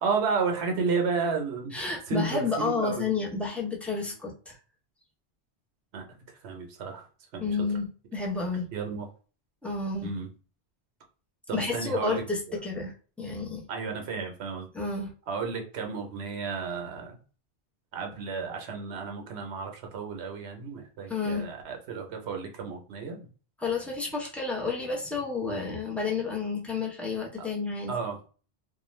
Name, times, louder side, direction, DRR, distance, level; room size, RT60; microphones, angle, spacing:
voice 1, 0.0-1.7 2.1-3.4 5.9-6.0 6.4-7.1 7.3-7.5 8.7-9.1 10.0-10.3 11.5-12.2 13.7-14.7 15.3-17.2 17.9-23.3 27.9-28.2, right 5 dB, 75° right, 4 dB, 0.9 m, -32 dB
voice 2, 1.7-4.6 7.4-8.7 9.6-10.1 11.5-12.9 13.2-13.6 14.7-15.1 21.1-21.5 23.6-27.9, left 4 dB, ahead, -3 dB, 0.5 m, -30 dB
2.4 x 2.2 x 3.0 m, 0.37 s
omnidirectional pair, 1.1 m